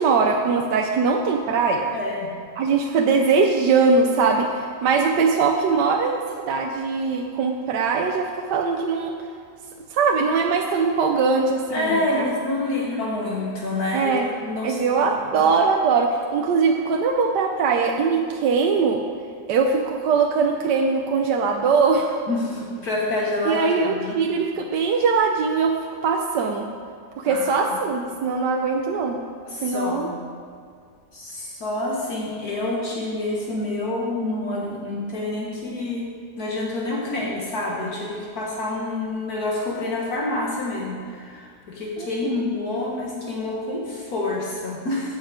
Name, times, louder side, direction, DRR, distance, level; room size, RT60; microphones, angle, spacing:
voice 1, 0.0-1.9 2.6-9.1 9.9-12.3 13.9-14.3 14.6-19.0 19.5-22.2 23.5-25.8 26.0-26.7 27.2-29.2 29.6-30.1 42.0-42.4, right 4 dB, 85° right, 2 dB, 1.4 m, -21 dB
voice 2, 1.9-2.3 11.7-14.1 14.4-15.5 22.3-24.2 27.2-27.6 29.5-30.2 31.1-36.1 36.4-45.2, left 2 dB, 60° left, -3 dB, 2.0 m, -27 dB
14.0 x 8.0 x 5.0 m, 2.2 s
omnidirectional pair, 1.8 m